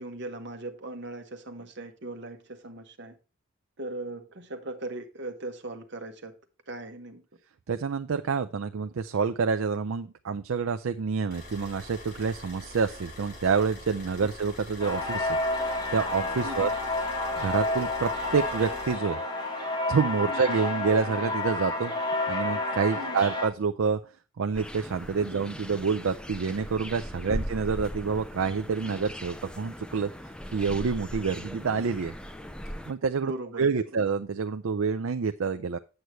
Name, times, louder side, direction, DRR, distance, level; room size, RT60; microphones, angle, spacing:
voice 1, 0.0-3.2 3.8-6.3 6.7-7.2 16.4-16.7 20.3-20.5 22.9-23.2 25.2-25.4 27.2-27.4 33.2-33.7, right 2 dB, 55° right, 6 dB, 1.2 m, -39 dB
voice 2, 7.7-15.4 15.6-16.7 17.4-19.2 19.9-24.0 24.4-30.1 30.5-32.1 32.9-33.3 33.6-35.8, right 5 dB, 75° right, 8 dB, 0.5 m, -28 dB
sound 1, 11.3-18.9, left 1 dB, 50° left, 5.4 m, -45 dB
sound 2, 14.8-23.5, left 2 dB, 20° left, 3.0 m, -30 dB
sound 3, 24.5-32.9, equal, 5° left, 0.6 m, -39 dB
8.0 x 7.9 x 3.1 m, 0.33 s
head